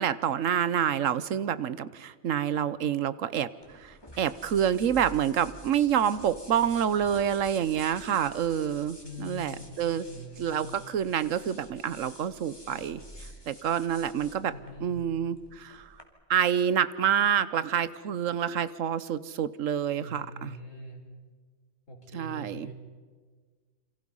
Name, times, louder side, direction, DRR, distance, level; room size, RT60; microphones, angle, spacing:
voice 1, 0.0-3.5 3.8-10.1 10.4-13.0 13.5-14.5 14.8-15.9 16.3-20.5 22.1-22.7, right 9 dB, 90° right, 16 dB, 1.2 m, -27 dB
sound 1, 3.6-16.0, equal, 20° left, 2.6 m, -49 dB
voice 2, 9.0-9.6 10.1-10.8 14.4-15.0 20.0-21.0 21.9-22.7, left 1 dB, 85° left, 1 dB, 5.2 m, -43 dB
28.5 x 26.0 x 5.5 m, 1.5 s
omnidirectional pair, 1.3 m